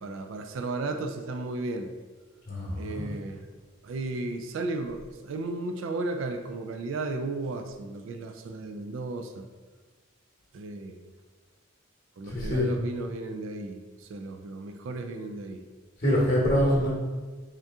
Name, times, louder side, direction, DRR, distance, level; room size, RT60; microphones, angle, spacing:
voice 1, 0.0-1.9 2.8-3.4 3.8-9.5 10.5-11.1 12.2-15.6, right 2 dB, 70° right, 6 dB, 0.3 m, -34 dB
voice 2, 2.5-3.1 12.3-12.7 16.0-16.9, equal, 40° left, -7 dB, 0.9 m, -25 dB
3.7 x 2.7 x 3.4 m, 1.4 s
head